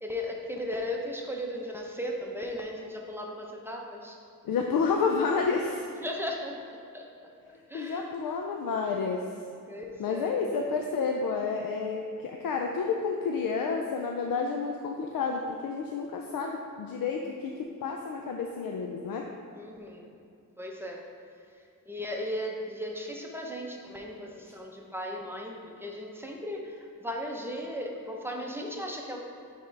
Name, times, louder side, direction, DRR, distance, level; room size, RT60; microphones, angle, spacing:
voice 1, 0.0-4.2 6.0-6.6 6.9-8.1 9.7-10.3 19.5-20.1 20.6-21.0 21.9-29.2, left 1 dB, 5° right, 0 dB, 0.6 m, -36 dB
voice 2, 4.4-5.9 7.7-9.3 10.0-19.3, left 5 dB, 80° left, 2 dB, 0.5 m, -30 dB
9.4 x 3.7 x 3.3 m, 2.4 s
wide cardioid pair, 110°, 34 cm